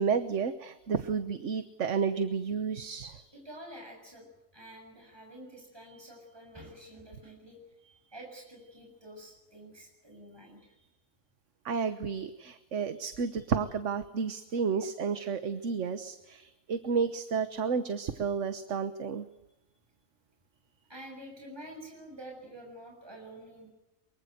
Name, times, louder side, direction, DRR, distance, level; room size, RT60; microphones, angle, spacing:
voice 1, 0.0-3.2 11.6-19.2, right 6 dB, 65° right, 10 dB, 1.4 m, -31 dB
voice 2, 3.3-4.3 4.5-10.9 13.0-13.1 20.9-23.7, right 1 dB, 20° right, 1 dB, 6.9 m, -48 dB
23.5 x 23.5 x 8.0 m, 0.96 s
omnidirectional pair, 1.4 m